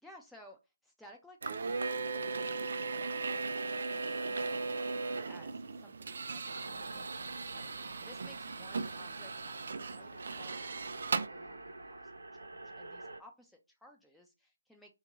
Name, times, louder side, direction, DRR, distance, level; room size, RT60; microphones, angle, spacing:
voice 1, 0.0-7.1 7.3-14.9, equal, ahead, 0 dB, 0.6 m, -59 dB
sound 1, 1.4-11.3, right 4 dB, 55° right, 0.3 m, -37 dB
sound 2, 6.5-13.2, right 2 dB, 75° right, 0.7 m, -47 dB
3.7 x 2.3 x 3.0 m, 0.26 s
figure-of-eight pair, 150°, 0 cm